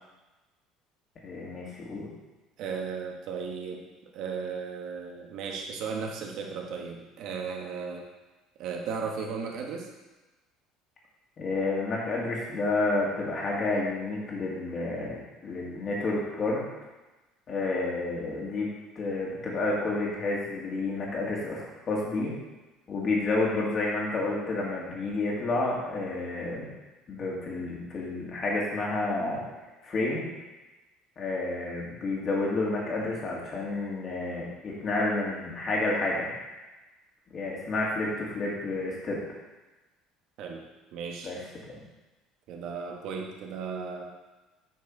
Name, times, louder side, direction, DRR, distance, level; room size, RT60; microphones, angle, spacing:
voice 1, 1.2-2.1 11.4-16.6 17.5-18.7 19.0-22.3 22.9-26.7 27.1-29.4 29.8-30.3 31.2-36.3 37.3-39.2 41.2-41.4 41.7-41.8, left 2 dB, 40° left, -3 dB, 2.4 m, -30 dB
voice 2, 2.6-8.1 8.6-9.9 40.4-40.6 40.9-41.3 42.5-44.0, right 5 dB, 65° right, 1 dB, 1.3 m, -35 dB
8.1 x 4.7 x 4.7 m, 1.1 s
supercardioid pair, 105°, 0 cm